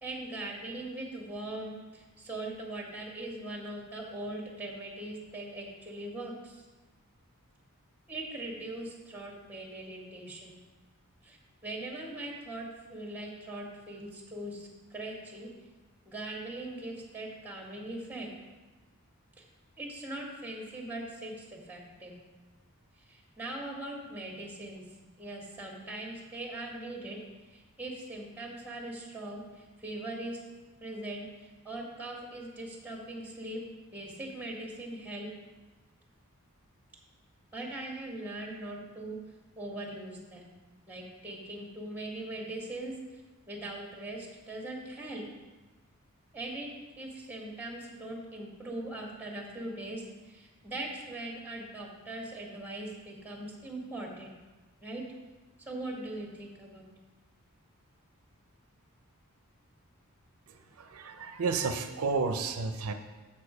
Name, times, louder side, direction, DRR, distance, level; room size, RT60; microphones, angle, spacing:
voice 1, 0.0-6.6 8.1-10.5 11.2-11.4 11.6-15.5 16.0-18.3 19.4-19.5 19.8-22.1 23.1-24.8 25.2-27.2 27.5-30.4 30.8-33.6 33.9-35.3 37.5-39.2 39.6-40.5 40.9-42.9 43.5-45.2 46.3-46.7 47.0-54.3 54.8-55.0 55.6-56.8, right 1 dB, 10° right, 0 dB, 1.6 m, -40 dB
voice 2, 60.8-62.9, right 4 dB, 80° right, 7 dB, 0.6 m, -31 dB
7.4 x 6.4 x 4.9 m, 1.2 s
head